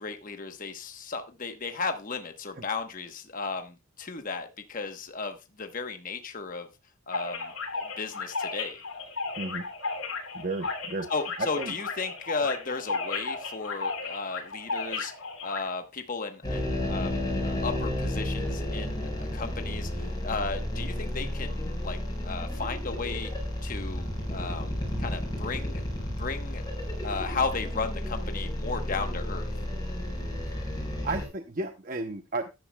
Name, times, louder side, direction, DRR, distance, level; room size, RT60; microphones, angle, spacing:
voice 1, 0.0-6.7 7.1-8.8 11.1-15.1 15.4-23.3 23.6-24.7 25.0-26.6 27.0-29.5, left 4 dB, 40° left, 6 dB, 1.0 m, -35 dB
sound 1, 7.1-15.6, left 4 dB, 70° left, 3.5 m, -34 dB
voice 2, 9.4-9.7 10.3-11.1 11.4-11.7 31.0-32.5, right 2 dB, 40° right, 7 dB, 0.7 m, -33 dB
sound 2, 16.4-31.2, left 1 dB, 20° left, 4.9 m, -32 dB
13.5 x 10.5 x 2.2 m, 0.25 s
head